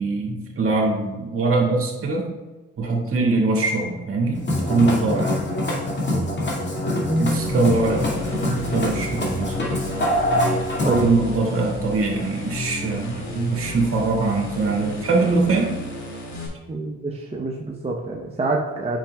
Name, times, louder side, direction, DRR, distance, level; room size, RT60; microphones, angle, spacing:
voice 1, 0.0-2.3 2.8-5.4 7.2-9.5 10.8-15.8, right 3 dB, 45° right, -1 dB, 1.9 m, -22 dB
Musical instrument, 4.3-11.0, left 1 dB, 35° left, 2.1 m, -24 dB
sound 1, 7.1-16.5, left 2 dB, 65° left, 2.2 m, -33 dB
voice 2, 16.7-19.0, right 2 dB, 20° right, -1 dB, 0.7 m, -26 dB
8.9 x 5.7 x 2.2 m, 1.2 s
cardioid pair, 90°, 30 cm